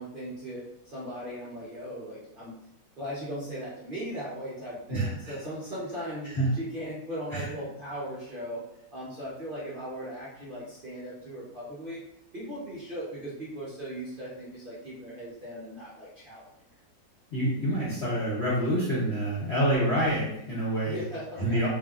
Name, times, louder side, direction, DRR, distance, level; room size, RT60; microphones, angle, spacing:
voice 1, 0.0-2.5 3.0-8.6 8.9-12.0 12.3-16.5 19.5-19.9 20.8-21.7, equal, 50° right, -8 dB, 0.6 m, -38 dB
voice 2, 4.9-5.4 6.3-6.5 7.3-7.5 17.3-21.0 21.4-21.7, right 1 dB, 45° left, -10 dB, 1.0 m, -27 dB
3.3 x 2.8 x 2.4 m, 0.79 s
omnidirectional pair, 2.0 m